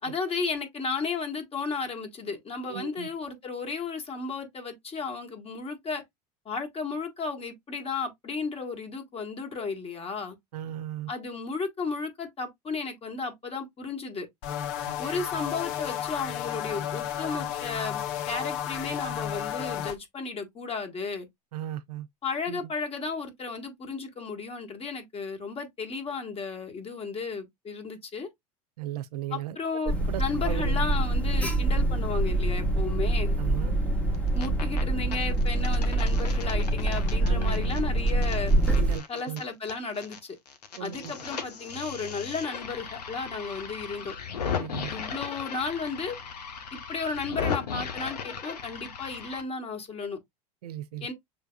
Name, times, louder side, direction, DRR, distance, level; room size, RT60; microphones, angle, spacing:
voice 1, 0.0-6.0 6.4-10.4 11.1-14.3 15.0-21.3 22.2-28.3 29.3-33.4 34.3-38.5 39.1-40.4 40.8-44.1 44.9-46.2 46.7-50.2 51.0-51.1, left 4 dB, 30° left, 1.7 m, -34 dB
voice 2, 2.7-3.1 10.5-11.1 21.5-22.1 22.5-22.6 28.8-29.6 30.1-30.9 33.4-33.8 37.2-37.9 38.8-39.5 40.8-41.1 44.6-44.9 50.6-51.1, right 12 dB, 70° right, 0.5 m, -36 dB
sound 1, 14.4-20.0, left 10 dB, 55° left, 1.0 m, -33 dB
Alarm, 29.9-39.0, right 1 dB, 5° left, 1.1 m, -25 dB
sound 2, 34.1-34.8 35.1-40.2 40.5-49.4, left 6 dB, 75° left, 1.1 m, -37 dB
6.5 x 3.4 x 2.3 m
figure-of-eight pair, 75°, 21 cm